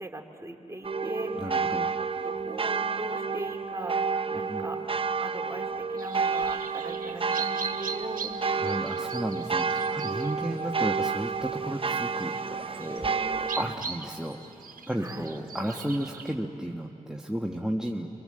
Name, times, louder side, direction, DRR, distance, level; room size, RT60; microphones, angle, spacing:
voice 1, 0.0-1.5 2.0-4.0 4.3-4.8 5.2-8.4 13.0-13.5 15.0-15.4, right 1 dB, 20° right, 2 dB, 2.7 m, -40 dB
sound 1, 0.8-13.8, right 5 dB, 40° right, 1.0 m, -30 dB
voice 2, 1.4-1.9 4.5-4.7 8.5-12.4 12.7-14.4 14.9-18.1, equal, 5° right, 0 dB, 1.4 m, -33 dB
sound 2, 6.0-16.3, right 5 dB, 75° right, 1.2 m, -41 dB
26.5 x 24.0 x 7.7 m, 2.9 s
cardioid pair, 50°, 15 cm